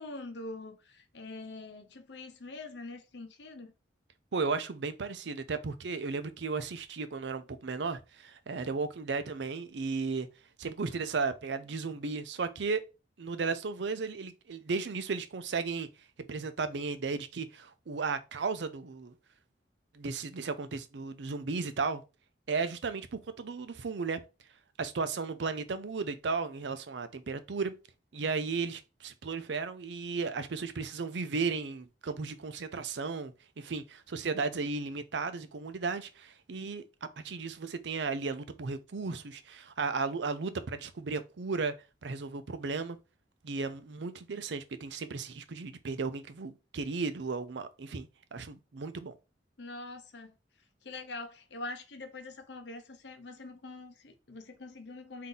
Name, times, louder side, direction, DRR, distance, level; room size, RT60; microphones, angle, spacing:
voice 1, 0.0-3.7 49.6-50.3 50.8-55.3, left 2 dB, 80° left, 0.8 m, -44 dB
voice 2, 4.3-10.3 10.6-12.8 13.2-15.9 16.3-19.1 19.9-22.0 22.5-24.2 24.8-27.7 28.1-36.8 37.2-41.7 42.0-43.0 43.4-49.2, right 4 dB, 85° right, 0.5 m, -35 dB
3.7 x 2.7 x 3.9 m
head